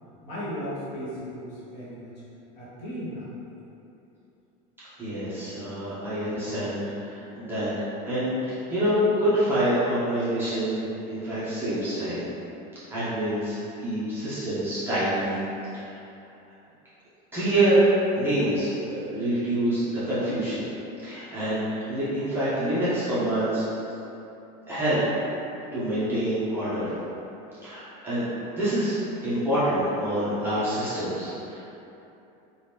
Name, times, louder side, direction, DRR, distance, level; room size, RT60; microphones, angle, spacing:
voice 1, 0.2-2.1 2.6-3.3 6.3-6.4, equal, 35° left, -10 dB, 1.0 m, -36 dB
voice 2, 5.0-7.7 8.0-12.2 12.9-15.4 15.7-16.0 17.3-20.7 21.0-23.6 24.7-25.0 25.7-26.9 27.6-31.6, right 1 dB, 10° right, -13 dB, 0.7 m, -26 dB
2.8 x 2.4 x 3.5 m, 2.9 s
cardioid pair, 165°, 19 cm